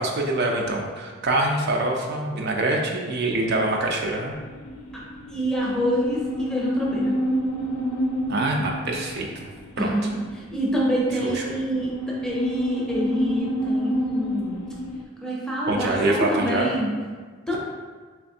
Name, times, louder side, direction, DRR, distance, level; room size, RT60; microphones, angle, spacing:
voice 1, 0.0-4.3 8.3-9.5 9.8-9.9 11.2-11.5 15.7-16.7, right 2 dB, 55° right, 0 dB, 0.4 m, -25 dB
sound 1, 4.3-15.0, equal, 85° left, 0.4 m, -29 dB
voice 2, 5.3-7.2 9.8-11.9 12.2-14.7 15.2-16.9 17.5-17.6, equal, 5° left, -5 dB, 0.6 m, -26 dB
3.3 x 3.2 x 2.7 m, 1.5 s
head